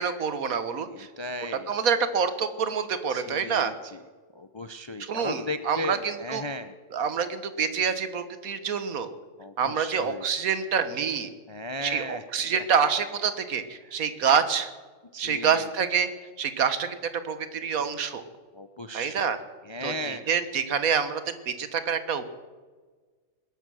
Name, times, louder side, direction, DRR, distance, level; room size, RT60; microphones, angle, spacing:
voice 1, 0.0-1.1 1.7-3.7 5.0-6.4 6.9-9.1 9.6-11.3 11.8-14.7 15.2-16.1 16.4-17.0 17.2-18.2 18.9-19.4 19.8-21.2 21.5-22.2, right 6 dB, 80° right, 11 dB, 1.6 m, -27 dB
voice 2, 0.9-1.7 3.1-4.0 4.3-6.7 9.4-10.3 11.5-12.2 15.1-15.7 18.5-19.3 19.6-20.3, left 1 dB, 40° left, 10 dB, 0.4 m, -36 dB
20.0 x 11.5 x 6.3 m, 1.4 s
omnidirectional pair, 1.5 m